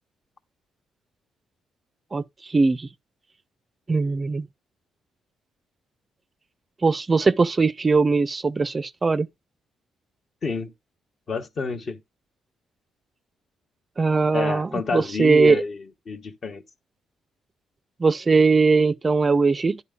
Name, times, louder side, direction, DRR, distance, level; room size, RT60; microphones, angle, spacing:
voice 1, 2.1-2.9 3.9-4.5 6.8-9.3 14.0-15.6 18.0-19.8, right 4 dB, 30° right, 0.4 m, -20 dB
voice 2, 10.4-10.7 11.3-12.0 14.3-16.6, left 4 dB, 45° left, 1.0 m, -28 dB
10.0 x 4.1 x 3.6 m
cardioid pair, 90°, 0 cm